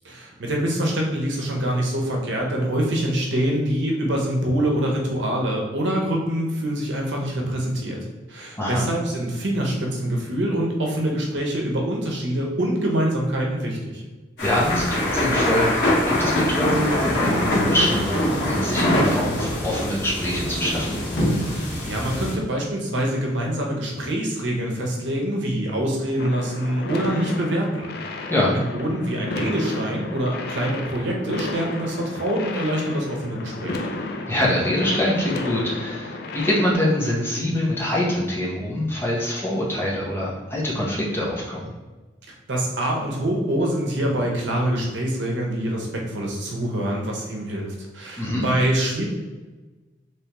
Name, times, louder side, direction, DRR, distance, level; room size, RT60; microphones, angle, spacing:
voice 1, 0.0-8.0 8.3-14.0 21.6-27.9 28.5-33.9 42.5-49.1, right 1 dB, 80° right, -1 dB, 0.8 m, -25 dB
sound 1, 14.4-22.3, left 1 dB, 80° left, 1.4 m, -23 dB
voice 2, 14.4-20.9 28.3-28.6 34.3-41.7 48.2-48.4, left 1 dB, 15° left, -4 dB, 0.8 m, -24 dB
sound 2, 26.2-36.7, left 2 dB, 60° left, 0.4 m, -33 dB
3.4 x 3.1 x 2.9 m, 1.2 s
head